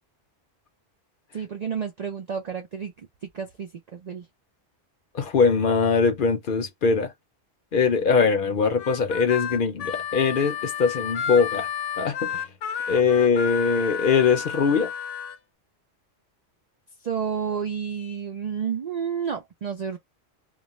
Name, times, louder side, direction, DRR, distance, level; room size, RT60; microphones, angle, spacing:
voice 1, 1.3-4.3 17.0-20.0, right 7 dB, 60° right, 0.4 m, -31 dB
voice 2, 5.1-7.1 7.7-11.7 12.0-12.4 12.9-14.9, left 5 dB, 55° left, 0.7 m, -22 dB
Harmonica, 8.8-15.4, left 8 dB, 85° left, 0.9 m, -31 dB
2.4 x 2.1 x 2.9 m
omnidirectional pair, 1.2 m